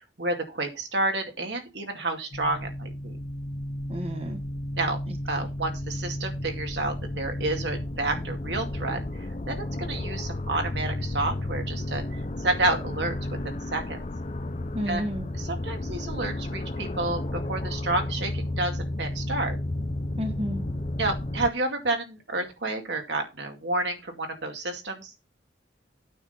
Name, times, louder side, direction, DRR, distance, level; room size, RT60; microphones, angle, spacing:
voice 1, 0.0-3.2 4.8-5.0 5.3-9.0 9.5-12.0 12.4-13.1 13.4-14.0 14.9-15.0 15.4-19.6 21.0-25.1, right 2 dB, 70° right, 4 dB, 2.3 m, -30 dB
sound 1, 2.3-21.5, left 1 dB, 35° left, 0.6 m, -33 dB
voice 2, 3.9-4.4 5.1-5.4 14.7-15.3 20.2-20.6, equal, 35° right, 4 dB, 1.4 m, -32 dB
9.2 x 6.2 x 5.6 m, 0.26 s
head